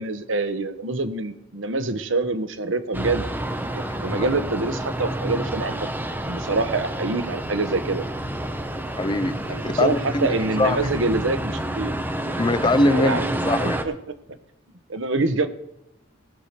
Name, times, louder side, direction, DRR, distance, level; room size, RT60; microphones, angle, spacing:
voice 1, 0.0-3.2 3.7-5.9 6.3-8.0 9.5-11.9 12.9-13.3 13.8-13.9 14.9-15.5, right 3 dB, 75° right, 10 dB, 1.0 m, -25 dB
sound 1, 2.9-13.8, right 1 dB, 10° right, 1.0 m, -29 dB
voice 2, 9.0-9.4 9.8-10.3 10.6-10.9 12.4-13.8, left 2 dB, 25° left, 12 dB, 0.6 m, -22 dB
18.5 x 6.6 x 4.5 m, 0.85 s
head